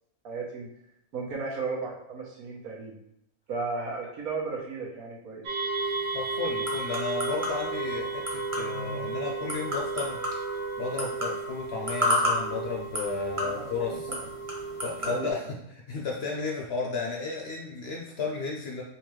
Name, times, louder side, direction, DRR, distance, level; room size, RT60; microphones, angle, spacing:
voice 1, 0.2-0.7 1.1-3.0 3.5-5.5 13.4-13.6 15.0-15.3, right 4 dB, 90° right, -2 dB, 1.4 m, -34 dB
sound 1, 5.5-15.3, right 4 dB, 70° right, 1.2 m, -34 dB
sound 2, 5.7-15.2, left 1 dB, 30° right, 0.8 m, -34 dB
voice 2, 6.1-10.2 10.5-14.1 14.8-15.6 15.9-18.8, left 4 dB, 65° left, -1 dB, 0.6 m, -33 dB
Wind instrument woodwind instrument, 6.8-11.4, right 4 dB, 45° right, 1.5 m, -41 dB
3.8 x 2.8 x 3.1 m, 0.78 s
omnidirectional pair, 1.5 m